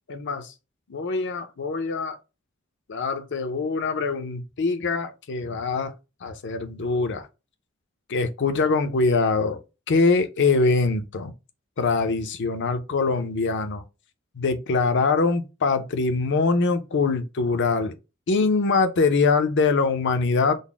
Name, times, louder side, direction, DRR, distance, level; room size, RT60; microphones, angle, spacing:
voice 1, 0.1-0.5 0.9-2.2 2.9-5.9 6.2-7.3 8.1-9.6 9.9-11.3 11.8-13.8 14.4-17.9 18.3-20.6, left 4 dB, 60° left, 0.6 m, -23 dB
3.9 x 2.0 x 3.4 m
head